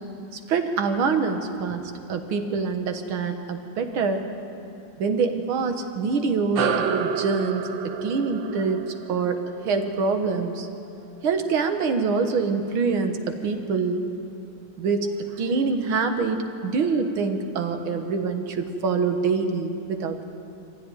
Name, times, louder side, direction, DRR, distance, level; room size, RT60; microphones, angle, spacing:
voice 1, 0.3-4.3 5.0-8.8 9.1-10.7 11.2-14.0 14.8-20.2, right 4 dB, 85° right, 6 dB, 2.2 m, -25 dB
sound 1, 6.5-11.4, right 7 dB, 70° right, 1.6 m, -30 dB
23.0 x 15.5 x 9.2 m, 2.8 s
omnidirectional pair, 2.2 m